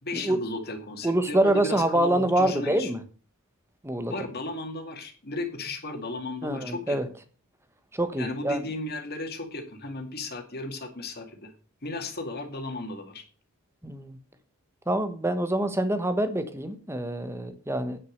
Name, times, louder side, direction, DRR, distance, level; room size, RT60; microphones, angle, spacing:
voice 1, 0.0-2.9 4.1-7.0 8.2-11.5 11.8-13.2, left 2 dB, 45° left, 4 dB, 2.3 m, -35 dB
voice 2, 1.0-3.0 3.8-4.1 6.4-7.1 7.9-8.6 13.8-14.2 14.9-18.0, right 1 dB, 10° right, 10 dB, 1.1 m, -26 dB
9.5 x 6.5 x 6.6 m, 0.40 s
head